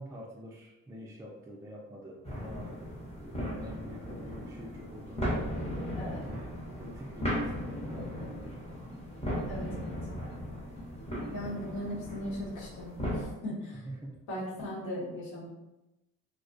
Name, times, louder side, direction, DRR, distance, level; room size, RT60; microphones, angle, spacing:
voice 1, 0.0-2.8 3.1-8.6 11.4-11.5 13.8-14.2, equal, 10° right, -3 dB, 0.3 m, -46 dB
sound 1, 2.3-13.3, equal, 20° left, 0.8 m, -37 dB
sound 2, 4.2-4.9 5.2-5.8 6.1-6.7 7.0-7.6 8.0-8.6 8.9-9.5 9.8-10.4 10.8-11.4, left 2 dB, 60° left, 0.6 m, -52 dB
voice 2, 5.9-6.4 9.5-9.9 11.3-13.8 14.3-15.5, equal, 75° left, -7 dB, 1.1 m, -38 dB
2.3 x 2.1 x 2.5 m, 0.98 s
cardioid pair, 90°, 30 cm